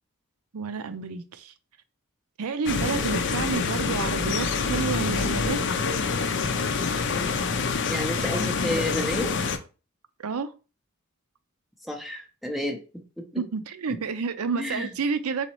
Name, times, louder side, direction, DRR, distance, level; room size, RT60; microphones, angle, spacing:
voice 1, 0.5-1.5 2.4-5.6 10.2-10.5 13.4-15.5, right 5 dB, 75° right, 0.5 m, -30 dB
sound 1, 2.7-9.6, left 5 dB, 55° left, 0.5 m, -26 dB
voice 2, 7.9-9.3 11.9-12.8 13.2-13.4 14.6-14.9, left 1 dB, ahead, 0.5 m, -30 dB
4.2 x 3.8 x 3.0 m
head